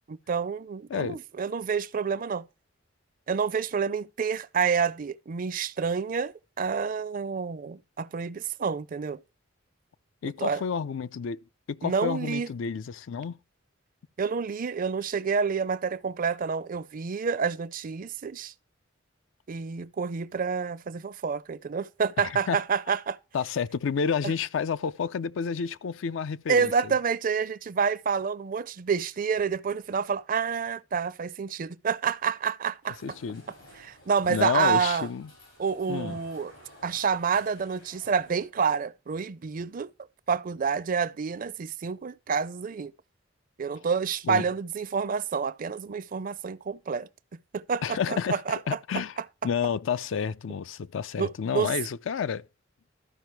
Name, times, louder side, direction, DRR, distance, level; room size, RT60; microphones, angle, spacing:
voice 1, 0.3-2.5 3.3-9.2 10.2-10.6 11.8-12.5 14.2-18.5 19.5-23.2 26.5-33.0 33.8-35.1 35.6-36.5 36.8-39.9 40.3-42.9 43.6-47.1 47.5-49.0 51.2-51.7, right 6 dB, 45° right, 0.4 m, -28 dB
voice 2, 10.2-13.4 22.2-22.6 23.3-26.9 33.0-33.4 34.3-35.3 35.9-36.2 44.2-44.4 47.8-48.4 48.7-49.2 49.4-52.5, left 6 dB, 70° left, 0.4 m, -30 dB
sound 1, 32.8-38.5, left 1 dB, 85° left, 5.5 m, -53 dB
13.0 x 5.0 x 4.5 m
head